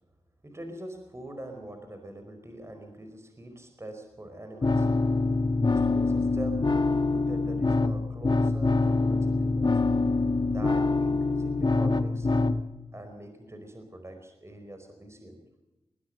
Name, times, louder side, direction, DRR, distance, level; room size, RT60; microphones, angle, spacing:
voice 1, 0.4-4.9 5.6-9.8 10.5-12.3 12.9-15.4, right 1 dB, 25° right, 6 dB, 4.8 m, -43 dB
sound 1, 4.6-12.6, left 3 dB, 45° left, 1.5 m, -25 dB
21.5 x 19.0 x 6.6 m, 1.0 s
cardioid pair, 50°, 10 cm